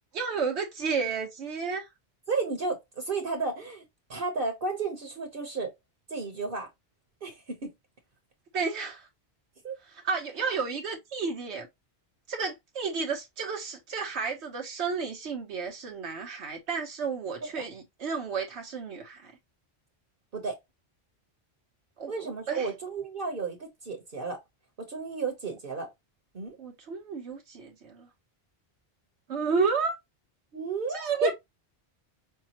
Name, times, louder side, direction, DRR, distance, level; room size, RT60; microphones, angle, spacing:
voice 1, 0.2-1.9 8.5-9.1 9.8-11.7 12.3-19.3 22.0-22.7 26.6-28.1 29.3-30.0 30.9-31.3, right 5 dB, 80° right, 1.1 m, -32 dB
voice 2, 2.3-3.8 4.1-5.7 6.1-6.7 7.2-7.7 9.6-9.8 17.6-17.7 20.3-20.6 22.1-24.4 24.8-25.9 26.3-26.6 30.5-31.3, right 4 dB, 55° right, 1.1 m, -32 dB
5.6 x 2.3 x 2.9 m
omnidirectional pair, 1.1 m